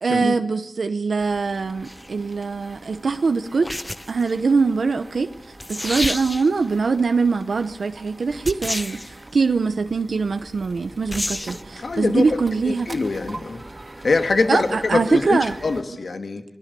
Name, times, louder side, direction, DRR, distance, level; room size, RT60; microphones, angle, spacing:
voice 1, 0.0-3.7 4.1-5.3 5.7-12.9 14.5-15.5, right 4 dB, 80° right, 8 dB, 0.9 m, -22 dB
sound 1, 1.2-15.8, right 2 dB, 40° right, 2.8 m, -42 dB
sound 2, 1.8-2.1 3.6-4.3 5.3-5.4 5.6-6.6 8.4-9.2 11.1-11.6, left 1 dB, 20° left, 0.9 m, -29 dB
voice 2, 11.8-12.2 12.6-13.7 14.0-16.4, left 3 dB, 75° left, 7 dB, 1.8 m, -23 dB
26.0 x 19.0 x 6.9 m, 0.77 s
cardioid pair, 45°, 0 cm